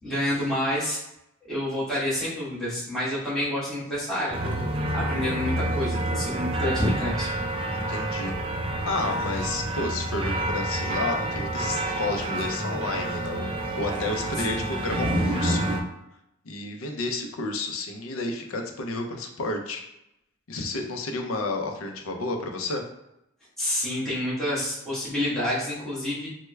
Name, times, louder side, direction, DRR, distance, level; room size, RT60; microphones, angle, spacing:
voice 1, 0.0-1.0 1.5-7.3 14.6-14.7 23.6-26.3, left 1 dB, ahead, -11 dB, 1.2 m, -28 dB
sound 1, 4.3-15.8, right 1 dB, 25° right, 0.4 m, -28 dB
voice 2, 7.7-8.3 8.9-15.7 16.5-19.8 20.5-22.8, left 2 dB, 75° left, 3 dB, 0.5 m, -31 dB
3.3 x 2.1 x 3.2 m, 0.83 s
head